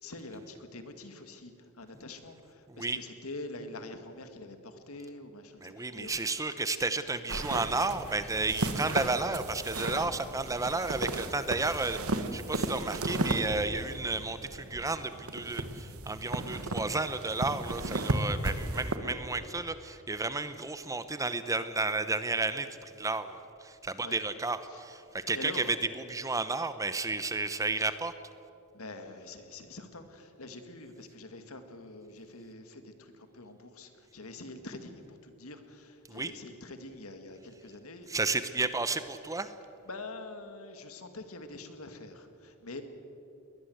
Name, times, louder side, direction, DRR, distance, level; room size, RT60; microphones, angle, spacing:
voice 1, 0.0-6.1 9.8-10.1 11.8-11.9 18.5-18.6 24.0-24.2 24.7-24.8 25.3-25.7 27.8-27.9 28.7-38.1 38.6-38.7 39.9-42.8, left 2 dB, 75° left, 7 dB, 2.2 m, -45 dB
voice 2, 2.7-3.0 5.6-28.1 36.1-36.3 38.1-39.5, right 3 dB, 15° right, 12 dB, 0.8 m, -32 dB
sound 1, 7.3-19.0, right 2 dB, 80° right, 1.6 m, -35 dB
22.0 x 20.0 x 8.0 m, 2.7 s
head